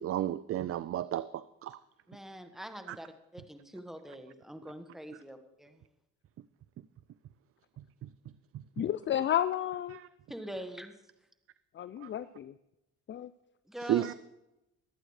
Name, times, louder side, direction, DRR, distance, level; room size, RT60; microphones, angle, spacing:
voice 1, 0.0-1.8 2.9-3.0 7.8-8.1 8.5-8.6 9.9-10.1 12.0-12.1 13.8-14.1, right 12 dB, 50° right, 0.4 m, -33 dB
voice 2, 2.1-5.8 10.3-10.9 13.7-14.1, equal, ahead, 1.4 m, -44 dB
voice 3, 8.8-10.0 11.7-12.5 13.1-13.3, left 11 dB, 40° left, 0.4 m, -31 dB
23.0 x 8.9 x 3.2 m
cardioid pair, 90°, 30 cm